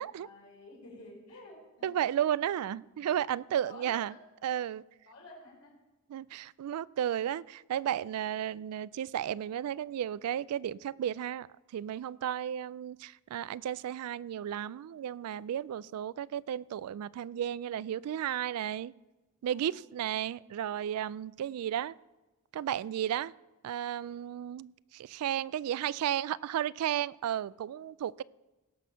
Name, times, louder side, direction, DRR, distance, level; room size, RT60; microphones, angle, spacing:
voice 1, 0.0-1.9 2.5-2.6 3.6-4.2 5.1-5.8 15.7-16.0 19.4-19.8, left 1 dB, 85° left, -3 dB, 4.6 m, -51 dB
voice 2, 1.8-4.1 4.4-4.8 6.1-11.5 11.7-18.9 19.4-22.0 22.5-23.3 23.6-28.2, right 10 dB, 90° right, 20 dB, 0.3 m, -33 dB
17.5 x 6.2 x 5.7 m, 1.1 s
head